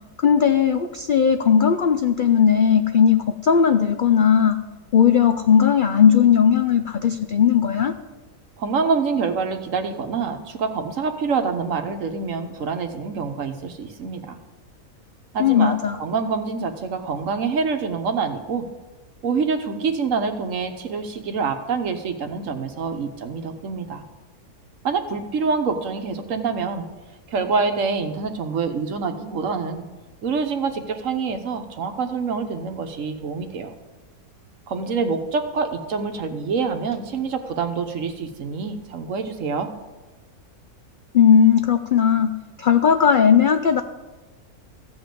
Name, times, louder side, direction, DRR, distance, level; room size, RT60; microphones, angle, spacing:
voice 1, 0.2-4.6 4.9-7.9 15.4-16.0 41.1-42.3 42.6-43.8, left 7 dB, 75° left, 8 dB, 0.4 m, -17 dB
voice 2, 8.6-14.4 15.3-18.6 19.2-24.0 24.8-26.8 27.3-29.8 30.2-33.7 34.7-39.7, right 5 dB, 65° right, 7 dB, 1.3 m, -26 dB
14.5 x 5.3 x 7.6 m, 1.2 s
omnidirectional pair, 1.5 m